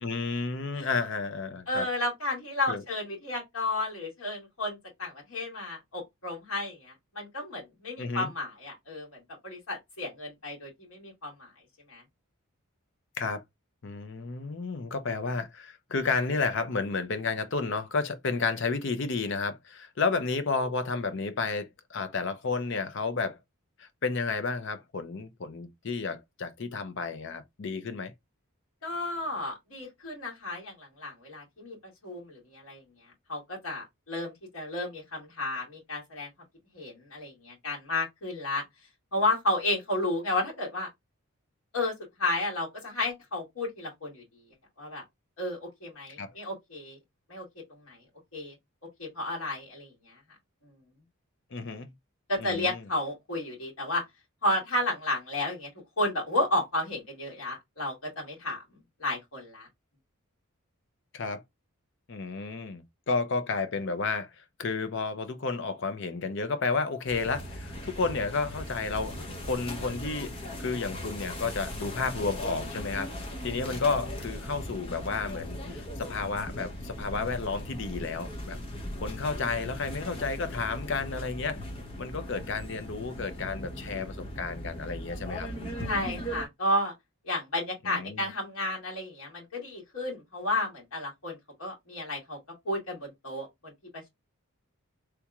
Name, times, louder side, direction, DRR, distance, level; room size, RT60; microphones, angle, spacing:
voice 1, 0.0-1.9 2.7-2.8 8.0-8.3 13.2-13.4 13.8-23.4 23.8-28.1 46.2-46.3 51.5-51.9 52.4-52.8 61.1-61.4 62.1-73.2 73.4-78.6 79.0-81.6 82.0-85.5 87.8-88.3, left 4 dB, 55° left, 0.6 m, -31 dB
voice 2, 1.7-11.5 11.9-12.0 28.8-31.8 32.0-32.8 33.3-36.3 36.7-38.6 39.1-40.9 41.7-41.9 42.2-44.2 44.8-45.0 45.4-47.0 47.3-48.0 48.3-48.6 49.0-50.2 50.6-50.7 52.3-54.0 54.4-58.6 59.0-59.7 85.8-86.9 87.2-92.4 92.7-94.1, left 1 dB, 75° left, 2.0 m, -32 dB
sound 1, 67.1-86.5, equal, 25° left, 0.8 m, -38 dB
3.4 x 3.0 x 2.3 m
head